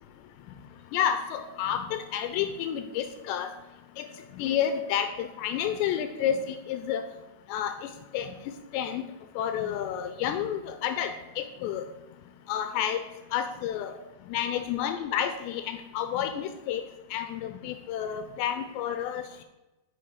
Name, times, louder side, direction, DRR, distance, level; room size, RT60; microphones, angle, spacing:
voice 1, 0.9-3.5 4.0-4.1 4.3-7.0 7.5-8.3 8.7-9.0 9.4-11.9 12.5-13.0 13.3-13.9 14.3-16.8 17.1-19.3, left 9 dB, 80° left, 7 dB, 2.6 m, -30 dB
8.5 x 5.4 x 4.8 m, 1.0 s
omnidirectional pair, 5.3 m